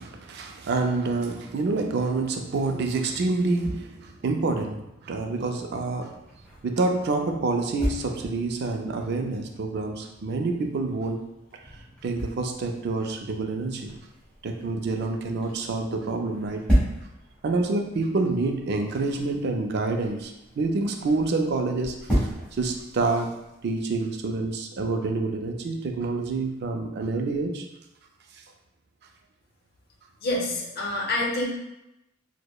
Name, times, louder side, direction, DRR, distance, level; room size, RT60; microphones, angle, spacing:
voice 1, 0.0-6.2 6.6-11.2 12.0-13.9 14.4-16.6 17.4-22.3 22.6-23.3 23.6-27.7, right 3 dB, 60° right, 4 dB, 0.4 m, -27 dB
sound 1, 5.1-24.0, equal, 5° left, 1.3 m, -34 dB
voice 2, 30.2-31.4, left 2 dB, 55° left, -2 dB, 0.7 m, -27 dB
4.6 x 2.1 x 2.3 m, 0.89 s
head